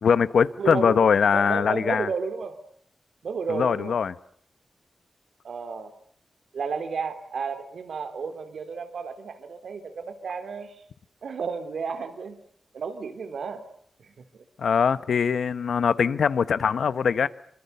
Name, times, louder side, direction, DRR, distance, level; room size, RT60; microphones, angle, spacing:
voice 1, 0.0-2.1 3.5-4.1 14.6-17.3, left 6 dB, 85° left, 1.1 m, -22 dB
voice 2, 0.6-2.6 3.2-3.9 5.4-5.9 6.5-10.8 11.2-12.4 12.7-13.6 14.0-14.4, right 5 dB, 80° right, 3.2 m, -32 dB
26.5 x 25.0 x 6.9 m
wide cardioid pair, 135°, 0 cm